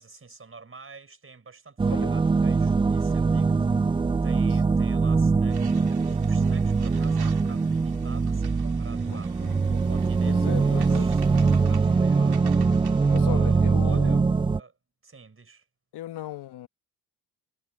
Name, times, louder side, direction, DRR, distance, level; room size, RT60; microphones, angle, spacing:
voice 1, 0.0-3.5 4.2-9.3 9.7-12.6 13.1-14.2 14.5-14.8 15.0-15.7, right 4 dB, 35° right, 5.3 m, -47 dB
sound 1, 1.8-14.6, right 4 dB, 15° right, 0.3 m, -22 dB
sound 2, 5.5-13.2, right 9 dB, 65° right, 3.7 m, -48 dB
voice 2, 9.1-9.6 10.2-11.1 13.0-14.3 15.9-16.7, left 13 dB, 80° left, 1.4 m, -37 dB
cardioid pair, 75°, 40 cm